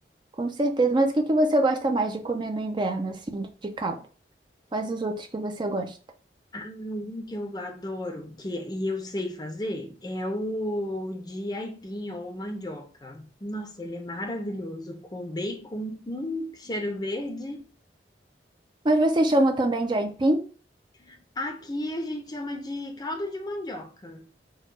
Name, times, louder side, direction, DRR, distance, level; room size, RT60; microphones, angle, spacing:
voice 1, 0.4-4.0 4.7-6.0 18.8-20.5, right 1 dB, 25° right, 0.5 m, -24 dB
voice 2, 6.5-17.6 21.0-24.3, left 1 dB, 25° left, 0.6 m, -33 dB
4.6 x 2.3 x 4.5 m
head